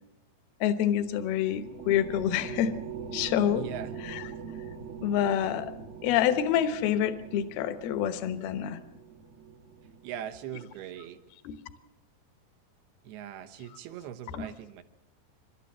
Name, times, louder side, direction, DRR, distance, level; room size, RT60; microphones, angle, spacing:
voice 1, 0.6-2.7 3.1-3.7 4.0-4.3 5.0-5.7 6.0-8.8 11.4-11.6 14.3-14.5, left 10 dB, 75° left, 11 dB, 2.9 m, -27 dB
sound 1, 1.0-10.8, right 6 dB, 60° right, 1.5 m, -43 dB
voice 2, 3.5-3.9 10.0-11.2 13.0-14.8, right 10 dB, 80° right, 9 dB, 3.1 m, -40 dB
27.5 x 12.5 x 7.5 m, 0.87 s
omnidirectional pair, 4.6 m